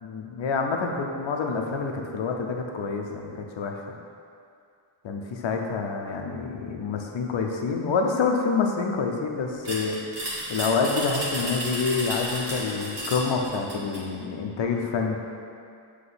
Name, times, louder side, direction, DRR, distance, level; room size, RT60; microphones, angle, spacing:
voice 1, 0.0-4.0 5.0-10.0 10.5-15.2, left 4 dB, 70° left, 2 dB, 0.7 m, -27 dB
sound 1, 9.7-14.1, right 1 dB, 60° right, 1.5 m, -32 dB
7.6 x 3.1 x 4.0 m, 2.4 s
wide cardioid pair, 110°, 47 cm